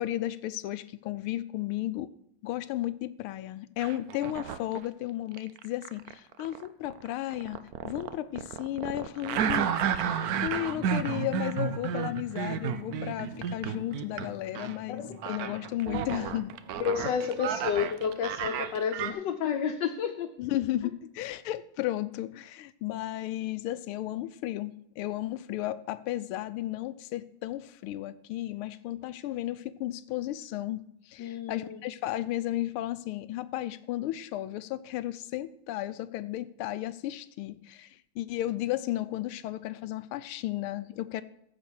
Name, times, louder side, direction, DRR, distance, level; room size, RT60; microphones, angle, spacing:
voice 1, 0.0-2.1 2.4-16.5 20.4-41.2, left 14 dB, 80° left, 15 dB, 1.5 m, -34 dB
sound 1, 3.8-4.8 5.3-14.3 14.5-14.8 15.2-19.1, right 8 dB, 80° right, 0.8 m, -32 dB
The Torrent, 10.1-19.4 19.7-19.8 20.2-20.3, left 1 dB, 50° right, 2.3 m, -47 dB
voice 2, 16.8-20.3 31.2-31.8, left 7 dB, 65° left, 3 dB, 1.3 m, -30 dB
14.0 x 5.1 x 6.2 m, 0.77 s
omnidirectional pair, 2.4 m